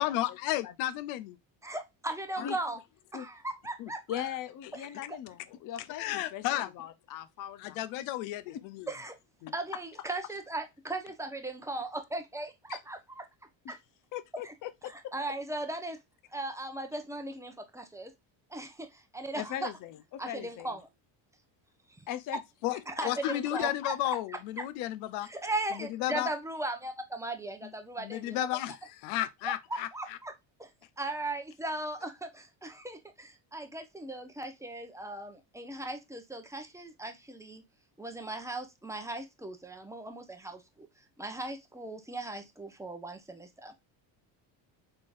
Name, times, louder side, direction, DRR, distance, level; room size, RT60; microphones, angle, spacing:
voice 1, 0.0-1.4 2.4-2.5 3.8-3.9 6.0-6.7 7.6-8.9 9.4-9.5 22.6-22.8 23.0-25.3 25.7-26.3 28.0-30.2, left 14 dB, 85° left, 0.7 m, -33 dB
voice 2, 1.6-2.8 3.1-4.3 4.7-4.9 8.9-9.2 9.5-13.2 13.7-13.8 14.4-14.5 14.9-16.0 16.3-18.1 18.5-19.7 20.2-20.8 22.0-22.1 22.9-23.7 24.0-24.6 25.2-28.5 29.4-29.5 29.9-30.3 30.6-30.7 31.0-37.6 38.0-43.8, right 2 dB, 5° right, 0.8 m, -38 dB
voice 3, 4.1-7.8 8.5-8.6 12.7-12.8 13.6-13.7 14.1-15.3 19.3-20.8 22.1-22.4 22.7-23.6, left 11 dB, 45° left, 0.6 m, -40 dB
3.7 x 3.7 x 2.4 m
cardioid pair, 115°, 47 cm